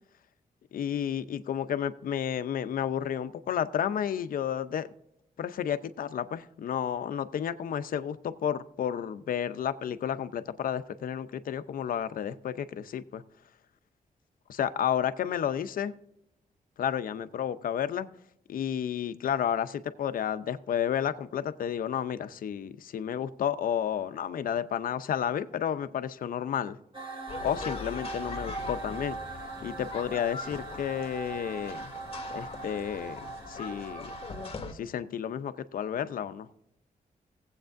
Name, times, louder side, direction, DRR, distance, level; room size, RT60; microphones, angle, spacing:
voice 1, 0.7-4.9 5.4-13.2 14.6-15.9 16.8-18.1 18.5-26.8 27.4-29.2 29.6-31.9 32.3-34.1 34.7-36.5, left 9 dB, 80° left, 12 dB, 0.6 m, -31 dB
sound 1, 26.9-34.5, right 3 dB, 35° right, 2.1 m, -40 dB
sound 2, 27.3-34.7, left 4 dB, 45° left, 1.4 m, -41 dB
18.0 x 8.0 x 2.6 m, 0.80 s
wide cardioid pair, 125°, 14 cm